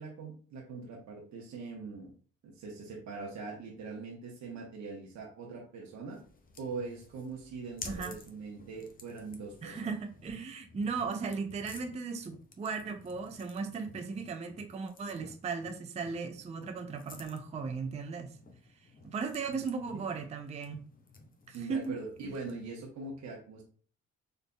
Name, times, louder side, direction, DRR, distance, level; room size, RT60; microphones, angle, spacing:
voice 1, 0.0-2.1 2.4-6.2 6.6-10.0 19.5-20.0 21.5-23.6, right 4 dB, 70° right, 1.0 m, -42 dB
sound 1, 6.1-22.7, left 3 dB, 30° left, 0.7 m, -53 dB
voice 2, 7.8-8.2 9.6-18.4 19.0-20.8 21.5-22.0, right 5 dB, 25° right, 0.4 m, -37 dB
3.9 x 3.3 x 2.2 m
cardioid pair, 90°, 30 cm